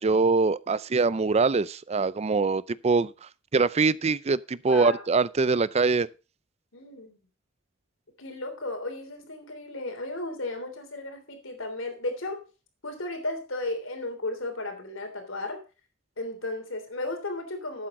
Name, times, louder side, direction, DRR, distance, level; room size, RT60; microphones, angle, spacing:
voice 1, 0.0-3.1 3.5-6.1, right 4 dB, 30° right, 0.5 m, -23 dB
voice 2, 4.7-5.0 6.7-7.2 8.2-12.4 12.8-15.6 16.2-17.9, left 2 dB, 80° left, 3.3 m, -34 dB
12.0 x 8.6 x 3.8 m
head